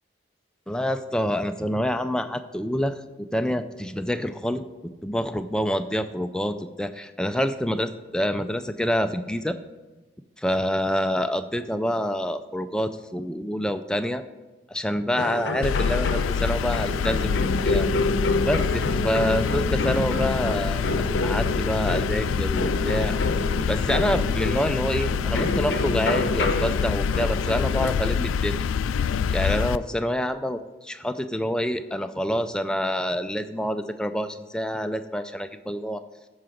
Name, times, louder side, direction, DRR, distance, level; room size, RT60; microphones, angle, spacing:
voice 1, 0.7-4.6 5.0-9.6 10.4-14.2 14.7-17.9 18.5-20.8 21.2-23.2 23.7-28.7 29.3-36.0, equal, 5° left, 9 dB, 0.3 m, -27 dB
sound 1, 15.2-27.9, left 2 dB, 60° left, 0.7 m, -28 dB
sound 2, 15.6-29.8, left 6 dB, 85° left, 0.3 m, -26 dB
13.5 x 4.8 x 5.1 m, 1.2 s
head